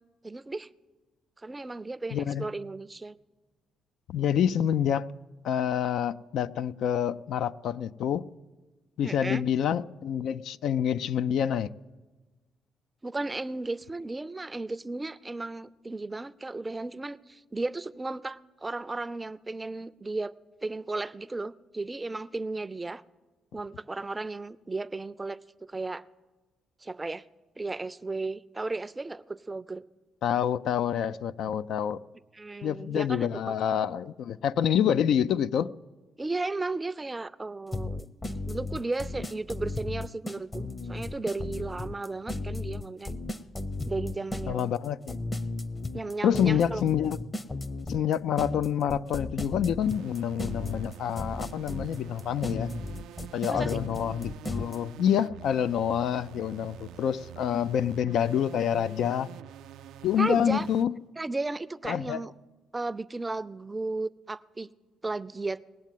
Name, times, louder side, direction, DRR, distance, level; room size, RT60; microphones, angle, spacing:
voice 1, 0.2-0.7 1.4-3.1 9.0-9.4 13.0-20.3 20.6-23.0 23.5-26.0 26.8-27.2 27.6-29.8 32.3-33.3 36.2-38.1 38.5-43.2 43.9-44.8 45.9-46.8 53.5-53.8 60.2-60.7 61.2-62.3 62.7-64.7 65.0-65.6, right 3 dB, 20° right, 0.4 m, -34 dB
voice 2, 2.1-2.5 4.1-5.1 5.4-8.2 9.0-11.7 30.2-32.0 32.6-35.7 44.5-45.2 46.2-47.2 47.9-52.7 53.3-59.3 60.0-61.0 61.9-62.2, left 9 dB, 75° left, 0.4 m, -27 dB
sound 1, 37.7-54.8, left 2 dB, 20° left, 0.7 m, -35 dB
sound 2, 49.8-60.9, right 12 dB, 85° right, 0.4 m, -47 dB
19.5 x 7.4 x 9.2 m
cardioid pair, 90°, 0 cm